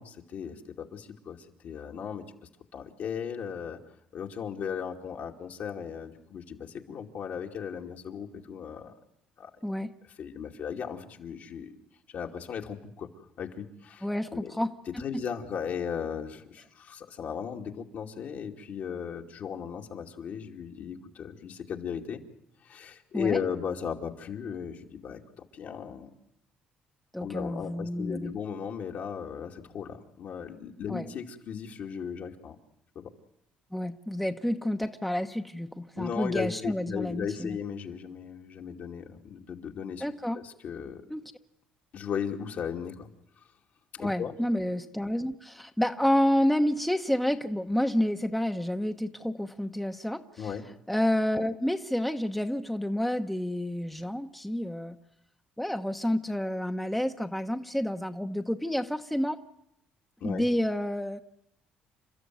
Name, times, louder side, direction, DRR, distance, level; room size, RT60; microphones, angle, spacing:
voice 1, 0.0-2.3 2.7-3.8 4.1-8.9 9.4-9.5 10.2-11.8 12.1-13.1 13.4-14.1 14.3-14.6 14.9-22.2 22.6-26.1 27.2-32.6 32.9-33.1 36.0-40.1 40.3-41.0 41.9-43.1 44.0-44.4 50.4-50.7 60.2-60.4, left 7 dB, 60° left, 2 dB, 2.5 m, -36 dB
voice 2, 14.0-14.7 15.1-15.2 23.1-23.4 27.1-28.3 30.9-31.1 33.7-37.6 40.0-40.4 41.1-41.2 44.0-50.5 50.9-55.0 55.6-59.4 60.2-61.2, left 1 dB, 5° left, 6 dB, 1.0 m, -29 dB
29.5 x 13.0 x 9.4 m, 0.80 s
cardioid pair, 85°, 3 cm